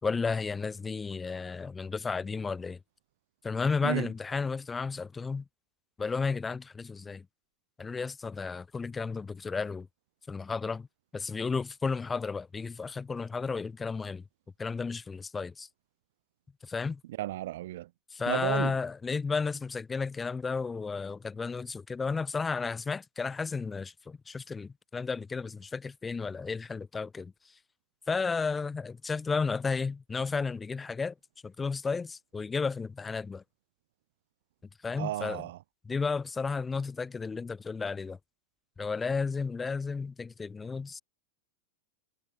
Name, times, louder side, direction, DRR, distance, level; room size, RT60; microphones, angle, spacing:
voice 1, 0.0-2.8 3.4-5.4 6.0-7.3 7.8-9.9 10.3-10.9 11.1-14.2 14.6-15.7 16.6-17.0 18.1-27.3 28.1-31.1 31.4-33.4 34.8-35.5 35.8-38.2 38.8-41.0, left 4 dB, 15° left, 5.9 m, -33 dB
voice 2, 17.2-17.9 18.3-18.7 35.0-35.6, right 15 dB, 55° right, 6.9 m, -33 dB
figure-of-eight pair, 90°, 0 cm